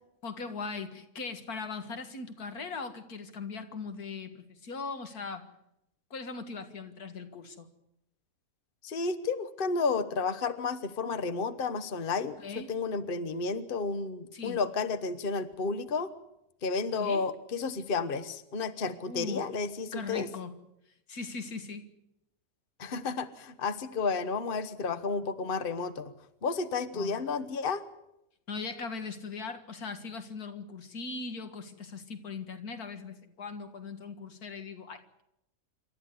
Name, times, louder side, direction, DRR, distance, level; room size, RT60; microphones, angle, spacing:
voice 1, 0.2-5.5 6.1-7.7 12.4-12.7 14.3-14.6 17.0-17.2 19.1-19.5 19.9-20.5 21.1-21.9 26.9-27.2 28.5-35.2, left 4 dB, 85° left, 8 dB, 2.2 m, -39 dB
voice 2, 8.8-16.1 16.6-20.3 22.8-26.1 26.4-27.8, left 4 dB, 40° left, 12 dB, 1.2 m, -32 dB
27.5 x 13.0 x 9.7 m, 0.85 s
omnidirectional pair, 1.5 m